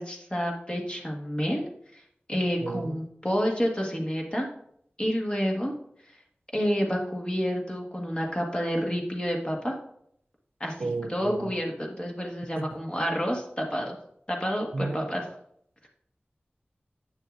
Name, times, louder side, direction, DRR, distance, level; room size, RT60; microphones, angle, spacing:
voice 1, 0.0-1.6 1.9-2.0 2.3-4.5 5.0-5.7 6.5-9.8 10.6-14.0 14.3-15.3, equal, 25° left, 0 dB, 1.5 m, -29 dB
voice 2, 2.6-3.0 10.8-11.5 12.6-12.8 14.7-15.1, right 3 dB, 85° right, 10 dB, 0.4 m, -33 dB
8.6 x 6.5 x 2.5 m, 0.71 s
wide cardioid pair, 55°, 4 cm